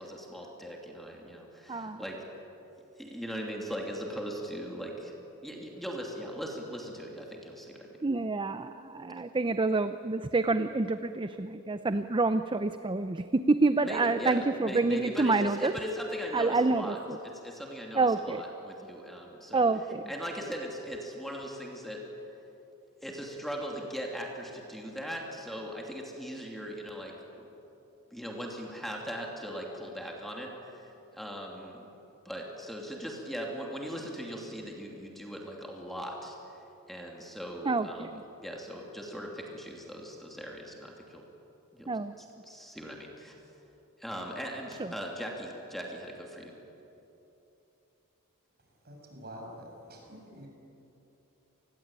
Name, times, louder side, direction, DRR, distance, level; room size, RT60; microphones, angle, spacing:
voice 1, 0.0-2.3 3.0-5.1 5.4-8.0 13.8-19.7 20.1-22.0 23.0-27.5 28.1-30.9 31.1-31.8 32.2-36.4 36.9-38.1 38.4-41.3 41.7-43.3 44.0-46.6, equal, ahead, -1 dB, 2.8 m, -39 dB
voice 2, 8.0-15.7 16.3-16.9 18.0-18.4 19.5-20.0 37.7-38.1 41.9-42.1, right 3 dB, 20° right, 10 dB, 0.6 m, -27 dB
voice 3, 48.8-50.5, equal, 45° right, 1 dB, 6.8 m, -46 dB
28.5 x 20.5 x 8.9 m, 3.0 s
head